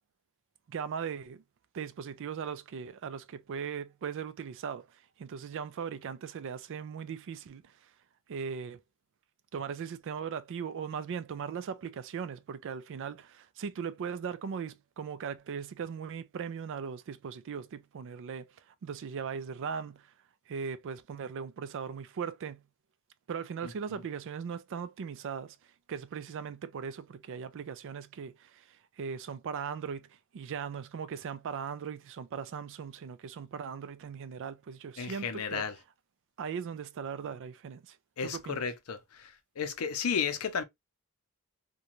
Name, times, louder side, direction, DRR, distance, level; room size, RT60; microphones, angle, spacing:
voice 1, 0.7-1.4 1.7-7.9 8.3-8.8 9.5-20.1 20.5-22.6 23.3-25.6 25.9-35.7 36.4-38.0 38.2-38.6, right 6 dB, 60° right, 0.3 m, -39 dB
voice 2, 35.0-35.7 38.2-39.3 39.6-40.6, left 6 dB, 70° left, 0.5 m, -33 dB
2.5 x 2.2 x 2.9 m
head